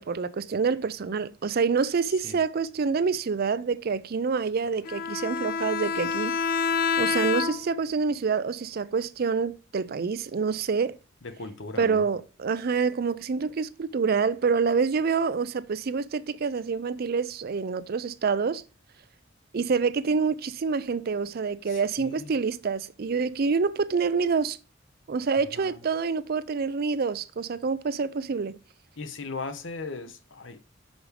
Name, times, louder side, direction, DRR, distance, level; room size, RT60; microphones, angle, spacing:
voice 1, 0.0-6.4 7.0-11.0 11.8-18.6 19.5-24.6 25.1-28.6, right 5 dB, 55° right, 0.5 m, -27 dB
Bowed string instrument, 4.8-7.9, left 5 dB, 50° left, 0.5 m, -27 dB
voice 2, 11.2-12.1 21.7-22.3 25.5-25.8 29.0-30.6, left 3 dB, 75° left, 1.0 m, -38 dB
6.2 x 5.1 x 3.3 m
head